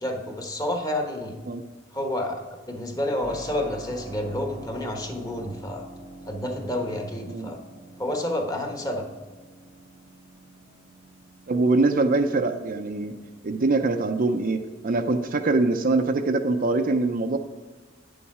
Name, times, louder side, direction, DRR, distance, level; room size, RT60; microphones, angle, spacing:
voice 1, 0.0-1.3 1.9-5.8 6.3-7.6 8.0-9.1, left 1 dB, 20° left, 3 dB, 1.2 m, -29 dB
Keyboard (musical), 3.2-15.9, right 1 dB, 65° left, 1.9 m, -47 dB
voice 2, 11.5-13.1 13.4-17.4, right 3 dB, 45° right, 7 dB, 0.5 m, -23 dB
9.5 x 7.1 x 4.8 m, 1.3 s
head